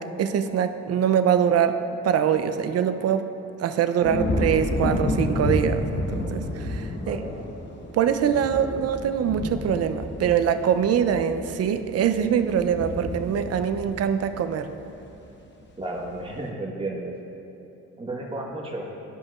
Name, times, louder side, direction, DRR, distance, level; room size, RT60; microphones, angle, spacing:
voice 1, 0.0-3.3 3.6-7.2 7.9-14.7, right 8 dB, 55° right, 9 dB, 0.5 m, -23 dB
sound 1, 4.0-15.3 15.7-16.2, left 1 dB, 40° left, 0.8 m, -30 dB
voice 2, 7.0-7.3 15.8-17.1 18.0-18.9, right 2 dB, 20° right, -2 dB, 1.2 m, -33 dB
12.5 x 5.2 x 2.4 m, 2.8 s
cardioid pair, 90°, 30 cm